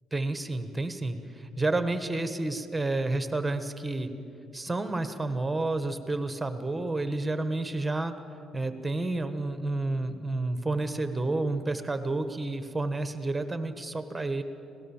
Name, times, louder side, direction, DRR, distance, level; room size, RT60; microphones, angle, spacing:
voice 1, 0.1-4.1 4.5-8.1 8.5-14.4, right 2 dB, 15° right, 9 dB, 1.5 m, -30 dB
25.0 x 18.0 x 7.3 m, 2.7 s
cardioid pair, 85°, 0 cm